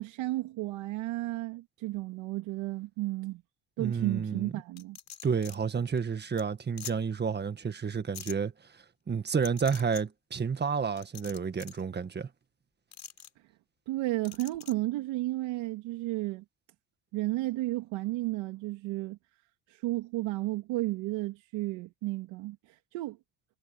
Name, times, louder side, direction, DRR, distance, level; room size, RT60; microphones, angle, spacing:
voice 1, 0.0-3.4 3.8-5.0 13.9-16.4 17.1-19.2 19.7-23.2, right 18 dB, 80° right, 2.7 m, -33 dB
voice 2, 3.8-4.5 5.2-8.5 9.1-12.3, right 6 dB, 25° right, 1.7 m, -30 dB
sound 1, 4.8-5.6 6.0-6.1 6.4-6.5 6.8-6.9 8.1-8.3 9.4-10.0 11.0-11.8 12.9-13.3 14.2-14.7, left 8 dB, 40° left, 7.4 m, -44 dB
cardioid pair, 130°, 44 cm